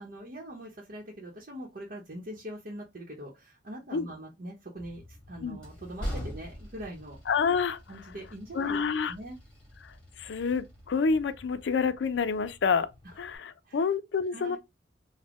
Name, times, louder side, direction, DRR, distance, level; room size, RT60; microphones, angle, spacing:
voice 1, 0.0-7.2 7.9-8.8 9.1-9.4 13.0-13.1 13.6-13.8 14.3-14.6, right 1 dB, 55° right, 0.8 m, -42 dB
Train, 4.8-13.4, equal, 5° left, 1.6 m, -44 dB
voice 2, 7.3-7.8 8.5-9.1 10.2-12.9 13.2-14.6, left 5 dB, 85° left, 0.4 m, -28 dB
4.0 x 2.1 x 2.9 m
head